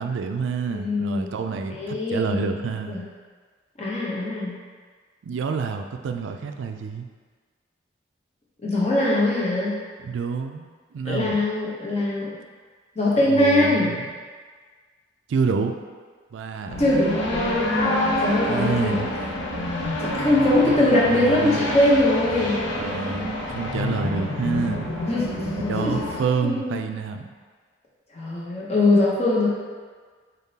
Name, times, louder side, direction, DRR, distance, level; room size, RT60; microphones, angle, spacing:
voice 1, 0.0-3.0 5.2-7.1 10.0-10.7 10.9-11.5 13.3-14.1 15.3-15.8 16.3-16.8 18.5-19.2 21.1-21.6 22.7-24.9 25.7-27.3, right 5 dB, 80° right, 6 dB, 0.3 m, -28 dB
voice 2, 0.7-1.3 1.7-2.5 2.9-3.0 3.8-4.6 8.6-9.8 11.0-12.3 13.0-13.9 16.8-17.4 18.1-19.1 20.0-22.6 25.1-25.3 25.8-26.0 26.4-26.8 28.1-29.5, left 1 dB, 35° left, -5 dB, 0.8 m, -21 dB
sound 1, 16.7-26.2, left 1 dB, 85° left, 0.7 m, -27 dB
3.9 x 3.6 x 2.8 m, 1.5 s
head